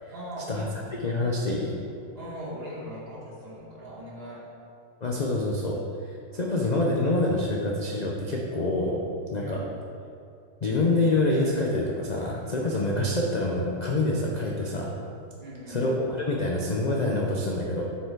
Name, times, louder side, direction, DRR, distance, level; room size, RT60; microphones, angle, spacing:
voice 1, 0.1-0.8 2.1-4.4 9.4-9.6 15.4-16.0, right 1 dB, 35° right, -7 dB, 2.2 m, -39 dB
voice 2, 1.0-1.8 5.0-5.8 6.1-9.0 9.3-9.6 10.6-15.0 15.7-17.8, left 2 dB, 50° left, -2 dB, 0.4 m, -26 dB
7.2 x 7.0 x 4.6 m, 2.5 s
omnidirectional pair, 1.8 m